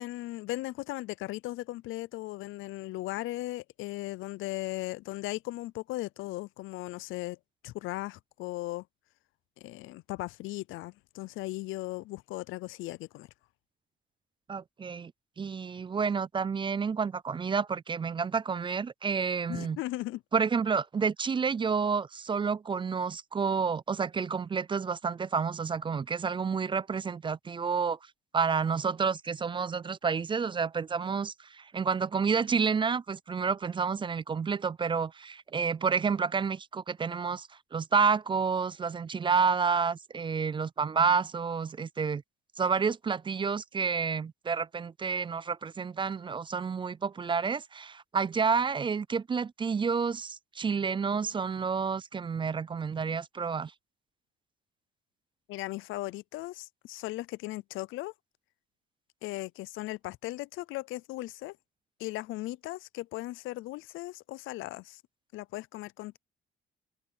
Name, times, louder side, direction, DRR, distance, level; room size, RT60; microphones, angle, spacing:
voice 1, 0.0-7.4 7.6-8.8 9.6-13.3 19.5-20.2 55.5-58.1 59.2-61.6 62.0-65.0 65.3-66.2, left 18 dB, 90° left, 0.5 m, -37 dB
voice 2, 14.5-15.1 15.4-19.8 20.3-28.0 28.3-42.2 42.6-53.7, right 5 dB, 25° right, 0.3 m, -29 dB
cardioid pair, 90°, 20 cm